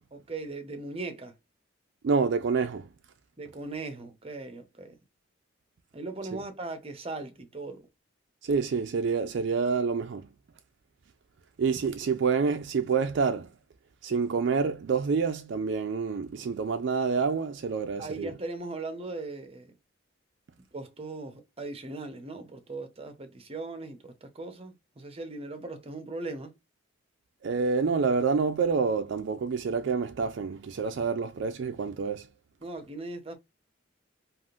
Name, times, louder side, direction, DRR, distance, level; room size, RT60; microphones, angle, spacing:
voice 1, 0.1-1.3 3.4-5.0 5.9-7.9 18.0-19.7 20.7-26.5 32.6-33.4, right 3 dB, 30° right, 0.7 m, -39 dB
voice 2, 2.0-2.9 8.4-10.3 11.6-13.5 14.0-18.3 27.4-32.3, right 5 dB, 60° right, 0.3 m, -27 dB
3.5 x 2.5 x 2.4 m
head